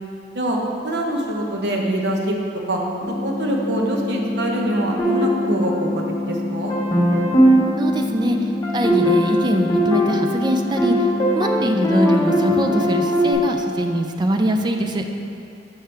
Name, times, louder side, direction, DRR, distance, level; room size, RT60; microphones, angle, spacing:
voice 1, 0.8-2.4 2.7-2.8 3.1-6.7, right 1 dB, 70° right, 0 dB, 0.8 m, -24 dB
sound 1, 3.0-13.0, left 2 dB, 45° left, 0.9 m, -28 dB
sound 2, 5.0-6.2 6.7-13.3, equal, 20° left, 1.0 m, -20 dB
voice 2, 7.8-8.4 8.7-10.9 11.3-15.0, right 1 dB, 25° right, 4 dB, 0.4 m, -22 dB
5.6 x 4.9 x 4.5 m, 2.6 s
head